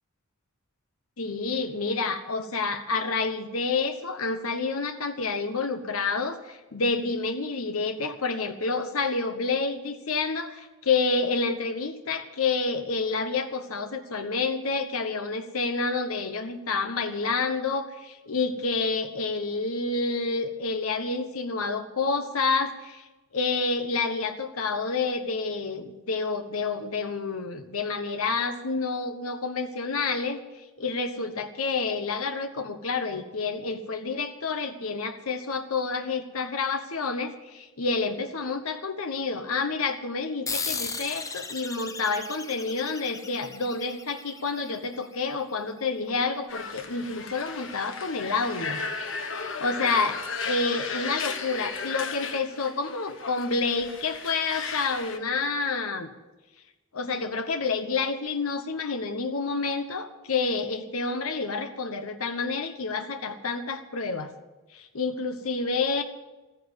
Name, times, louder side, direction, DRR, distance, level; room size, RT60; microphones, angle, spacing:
voice 1, 1.2-23.1 23.3-48.8 49.3-50.1 50.4-56.1 56.9-64.3 64.7-66.0, left 4 dB, 80° left, 7 dB, 1.2 m, -29 dB
sound 1, 40.5-45.4, left 4 dB, 15° left, 0.9 m, -36 dB
sound 2, 46.5-55.2, left 5 dB, 60° left, 1.5 m, -35 dB
14.5 x 10.0 x 8.2 m, 1.1 s
head